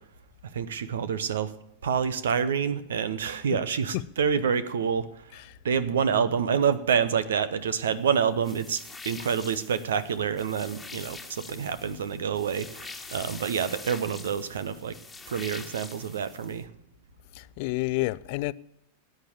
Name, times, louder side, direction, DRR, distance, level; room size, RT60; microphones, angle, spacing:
voice 1, 0.5-1.5 1.8-5.1 5.6-15.0 15.3-16.7, right 7 dB, 65° right, 0.9 m, -27 dB
sound 1, 8.4-16.6, left 3 dB, 10° left, 1.7 m, -44 dB
voice 2, 17.3-18.5, left 21 dB, 45° left, 0.4 m, -30 dB
18.0 x 9.0 x 7.2 m
figure-of-eight pair, 90°, 0 cm